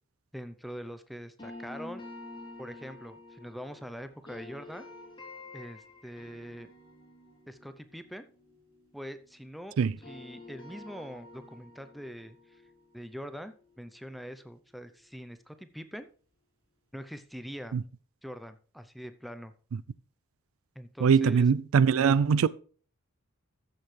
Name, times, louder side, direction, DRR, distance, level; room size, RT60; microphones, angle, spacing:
voice 1, 0.3-2.0 2.6-4.9 5.5-6.7 7.5-8.3 8.9-9.7 10.0-12.6 12.9-16.1 16.9-17.8 18.2-19.5 20.8-21.4, equal, ahead, 0.5 m, -43 dB
sound 1, 1.4-9.5 9.8-14.7, left 2 dB, 20° left, 3.1 m, -49 dB
voice 2, 21.0-22.5, right 6 dB, 70° right, 0.4 m, -22 dB
14.0 x 6.6 x 3.2 m
head